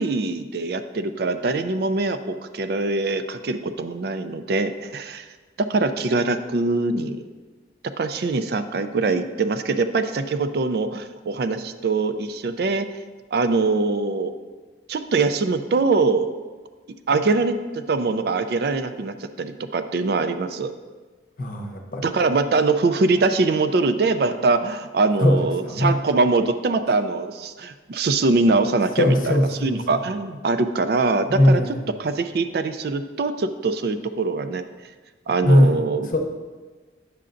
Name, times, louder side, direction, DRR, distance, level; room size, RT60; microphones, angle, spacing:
voice 1, 0.0-5.3 5.6-7.2 8.0-13.0 13.3-14.3 14.9-16.3 17.1-20.7 21.9-31.6 32.0-34.6 35.3-36.1, right 3 dB, 55° right, 9 dB, 0.4 m, -23 dB
voice 2, 21.4-22.1 25.2-25.9 29.0-30.0 31.3-31.9 35.4-35.8 36.1-36.2, left 1 dB, 45° left, 3 dB, 0.8 m, -19 dB
9.6 x 6.7 x 2.5 m, 1.3 s
head